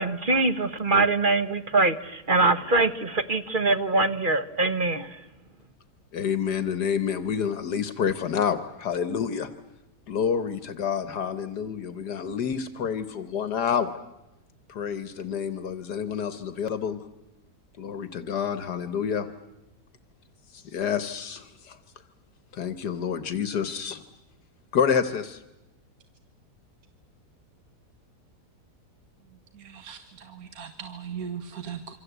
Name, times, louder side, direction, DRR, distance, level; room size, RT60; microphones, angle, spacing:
voice 1, 0.0-5.1, right 3 dB, 35° right, 11 dB, 1.2 m, -23 dB
voice 2, 6.1-9.5 10.1-13.9 14.7-17.0 17.8-19.3 20.5-21.8 22.5-24.0 24.7-25.4, left 7 dB, 75° left, 12 dB, 1.8 m, -28 dB
voice 3, 29.5-31.9, right 7 dB, 60° right, 8 dB, 1.9 m, -38 dB
27.0 x 25.0 x 8.1 m, 0.96 s
omnidirectional pair, 1.8 m